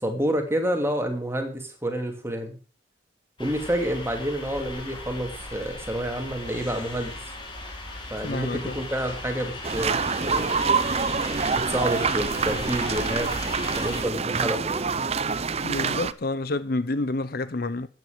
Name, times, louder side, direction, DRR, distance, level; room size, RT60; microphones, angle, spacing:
voice 1, 0.0-2.6 3.4-7.2 8.1-10.5 11.7-15.1, right 1 dB, 15° right, 2.6 m, -29 dB
sound 1, 3.4-14.0, left 2 dB, 25° left, 4.6 m, -37 dB
voice 2, 8.2-8.8 15.6-17.9, left 2 dB, 55° left, 0.8 m, -28 dB
sound 2, 9.6-16.1, right 5 dB, 35° right, 0.6 m, -26 dB
14.0 x 9.5 x 5.0 m
head